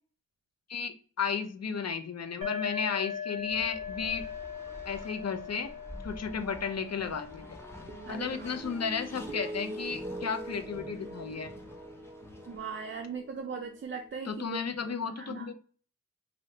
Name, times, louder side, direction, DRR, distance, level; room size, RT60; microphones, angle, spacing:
voice 1, 0.7-4.2 4.9-5.7 6.0-7.6 8.1-11.5 14.3-15.5, left 6 dB, 45° left, 8 dB, 0.5 m, -34 dB
sound 1, 2.4-9.9, left 7 dB, 70° left, 1.0 m, -41 dB
Race car auto racing, 3.4-13.0, equal, 5° left, 0.7 m, -48 dB
sound 2, 7.9-14.5, right 1 dB, 20° right, 0.8 m, -43 dB
voice 2, 8.0-8.5 12.5-14.6 14.8-15.5, right 5 dB, 35° right, 3 dB, 0.4 m, -39 dB
2.7 x 2.7 x 3.2 m, 0.40 s
cardioid pair, 40°, 35 cm